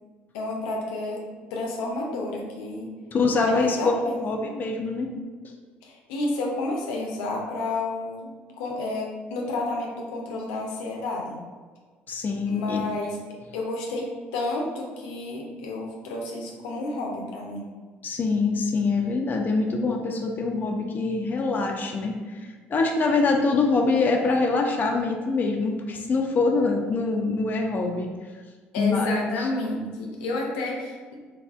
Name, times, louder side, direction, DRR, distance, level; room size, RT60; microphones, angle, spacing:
voice 1, 0.3-1.2 1.5-2.9 3.4-4.3 5.8-11.4 12.4-13.2 13.5-17.7 28.7-31.1, left 2 dB, 85° left, -1 dB, 0.5 m, -30 dB
voice 2, 3.1-3.8 4.0-5.1 12.1-12.8 18.0-28.1 28.8-29.5, left 3 dB, 35° left, 2 dB, 0.4 m, -24 dB
3.3 x 2.4 x 2.3 m, 1.4 s
supercardioid pair, 70°, 5 cm